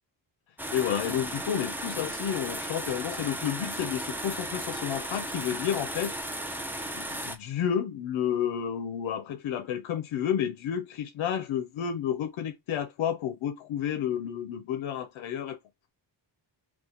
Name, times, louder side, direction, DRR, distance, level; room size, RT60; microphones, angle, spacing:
sound 1, 0.6-7.4, right 1 dB, 5° right, 0.4 m, -35 dB
voice 1, 0.7-6.1 6.9-15.6, left 9 dB, 85° left, 0.6 m, -31 dB
2.8 x 2.4 x 3.7 m
wide cardioid pair, 100°, 46 cm